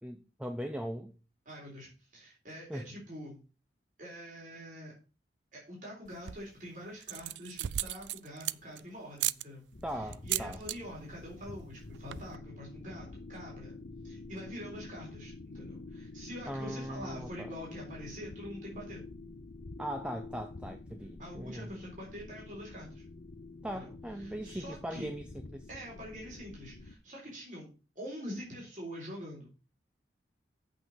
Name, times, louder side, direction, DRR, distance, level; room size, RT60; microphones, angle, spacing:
voice 1, 0.0-1.1 2.7-2.9 9.8-10.6 16.5-17.5 19.8-21.7 23.6-25.7, equal, 5° right, 0.6 m, -39 dB
voice 2, 1.5-3.4 4.0-4.9 5.5-9.6 9.9-13.8 14.0-19.0 21.2-23.0 23.7-23.9 24.2-25.1 25.7-27.7 28.0-29.5, equal, 45° right, 3.9 m, -45 dB
sound 1, 6.0-6.5 7.0-8.8 9.2-9.4 10.1-10.8 11.1-11.4 11.6-11.7 11.9-12.4, right 14 dB, 85° right, 0.3 m, -35 dB
sound 2, 9.7-26.9, left 2 dB, 55° left, 0.8 m, -48 dB
7.9 x 5.8 x 6.6 m
head